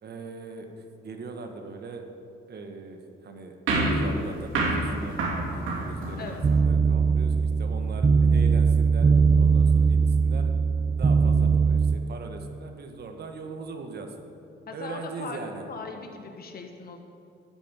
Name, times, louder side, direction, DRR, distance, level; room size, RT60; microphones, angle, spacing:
voice 1, 0.0-2.0 2.5-3.6 3.9-10.5 11.0-14.1 14.7-15.6, right 4 dB, 55° right, 5 dB, 1.5 m, -40 dB
sound 1, 3.7-6.6, right 2 dB, 85° right, 2.8 m, -27 dB
voice 2, 6.2-6.5 14.7-17.0, left 4 dB, 50° left, 4 dB, 1.6 m, -39 dB
sound 2, 6.4-12.0, right 5 dB, 20° right, 0.4 m, -20 dB
13.5 x 5.4 x 9.1 m, 2.6 s
cardioid pair, 90°, 20 cm